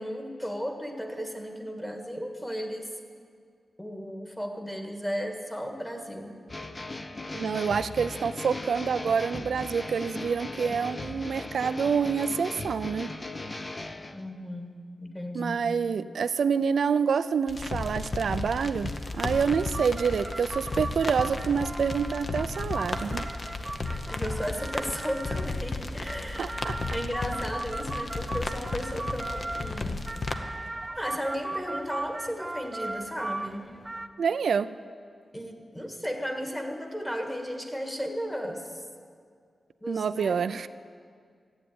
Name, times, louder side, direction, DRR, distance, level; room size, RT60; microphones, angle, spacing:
voice 1, 0.0-2.9 3.8-6.4 14.1-15.7 24.1-30.0 31.0-33.7 35.3-38.8 39.8-40.4, equal, 10° left, 3 dB, 1.7 m, -35 dB
sound 1, 6.5-14.2, left 2 dB, 25° left, 0.6 m, -38 dB
voice 2, 7.3-13.1 15.3-23.3 26.4-26.8 34.2-34.7 39.9-40.7, right 6 dB, 80° right, 12 dB, 0.4 m, -27 dB
sound 2, 17.5-30.4, left 3 dB, 40° left, 0.9 m, -34 dB
sound 3, 17.6-34.1, right 2 dB, 15° right, 0.7 m, -39 dB
15.0 x 8.8 x 9.4 m, 2.1 s
wide cardioid pair, 125°, 0 cm